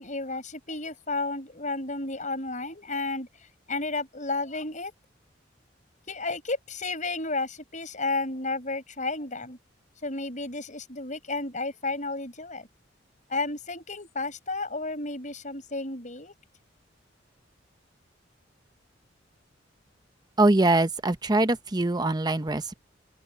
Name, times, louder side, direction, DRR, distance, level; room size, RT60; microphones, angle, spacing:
voice 1, 0.0-3.3 3.7-4.9 6.1-9.6 10.0-12.7 13.3-16.3, left 3 dB, 40° left, 7.0 m, -32 dB
voice 2, 20.4-22.8, right 2 dB, 20° right, 0.8 m, -23 dB
open air
head